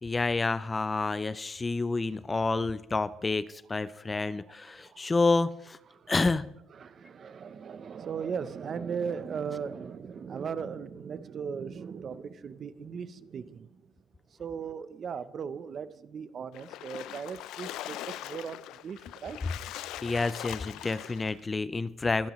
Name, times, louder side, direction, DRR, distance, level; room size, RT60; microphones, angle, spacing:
voice 1, 0.0-5.8 6.1-6.6 20.0-22.3, left 3 dB, 20° left, 16 dB, 0.4 m, -29 dB
voice 2, 4.1-5.4 5.8-6.4 6.7-13.8 14.4-19.4, right 6 dB, 40° right, 14 dB, 0.8 m, -38 dB
Splash splatter, 16.5-21.4, left 13 dB, 75° left, 0.5 m, -41 dB
23.5 x 12.0 x 3.1 m, 0.86 s
cardioid pair, 125°, 0 cm